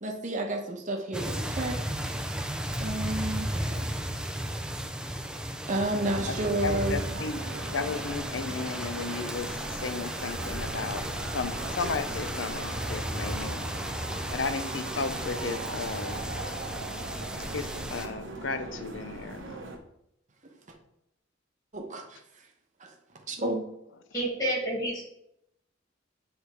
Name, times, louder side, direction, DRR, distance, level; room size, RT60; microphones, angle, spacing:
voice 1, 0.0-2.2 2.8-3.9 5.7-7.0 21.7-22.2 22.8-22.9 23.3-23.7, right 1 dB, 40° right, 2 dB, 0.9 m, -31 dB
sound 1, 1.1-18.1, right 1 dB, 5° right, 0.4 m, -34 dB
sound 2, 5.7-19.8, right 2 dB, 75° right, 1.1 m, -40 dB
voice 2, 6.6-7.5 7.7-11.1 11.3-13.7 14.3-16.3 17.4-19.6, left 4 dB, 70° left, 10 dB, 0.5 m, -34 dB
voice 3, 24.1-25.0, right 1 dB, 20° left, -1 dB, 1.9 m, -29 dB
8.8 x 3.5 x 4.7 m, 0.80 s
head